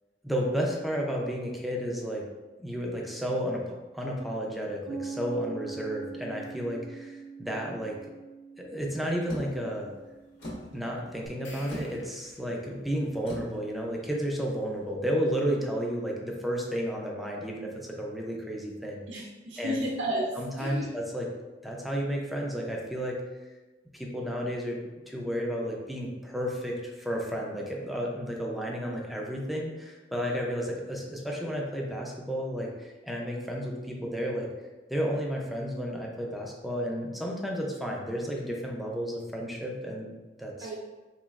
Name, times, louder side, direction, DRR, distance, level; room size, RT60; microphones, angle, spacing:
voice 1, 0.2-2.3 2.6-8.0 8.6-9.9 10.7-19.2 19.6-19.8 20.4-21.3 21.6-23.2 23.9-24.8 25.1-34.5 34.9-40.7, equal, ahead, -2 dB, 0.4 m, -32 dB
Piano, 4.8-12.1, right 5 dB, 30° left, 0.7 m, -44 dB
sound 1, 9.3-14.9, left 1 dB, 65° left, 1.0 m, -44 dB
sound 2, 11.2-12.8, left 2 dB, 85° left, 0.8 m, -51 dB
voice 2, 19.1-20.9 40.6-40.8, equal, 85° right, -3 dB, 0.6 m, -32 dB
4.1 x 3.0 x 2.4 m, 1.2 s
head